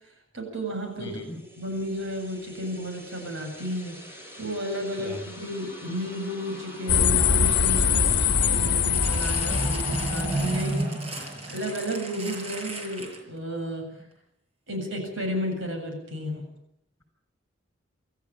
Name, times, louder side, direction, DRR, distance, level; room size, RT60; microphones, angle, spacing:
voice 1, 0.3-1.1 1.6-11.0 11.5-13.9 14.7-16.5, equal, 75° right, 3 dB, 7.7 m, -33 dB
voice 2, 1.0-1.4 5.0-5.2 9.6-9.8 11.1-11.4, left 1 dB, 15° left, 6 dB, 6.9 m, -40 dB
sound 1, 1.5-12.2, right 1 dB, 10° right, 6.1 m, -36 dB
sound 2, 6.9-10.8, left 6 dB, 60° left, 1.3 m, -23 dB
sound 3, 8.9-13.4 14.1-14.2, right 2 dB, 30° right, 6.2 m, -39 dB
27.0 x 14.0 x 8.9 m, 0.78 s
head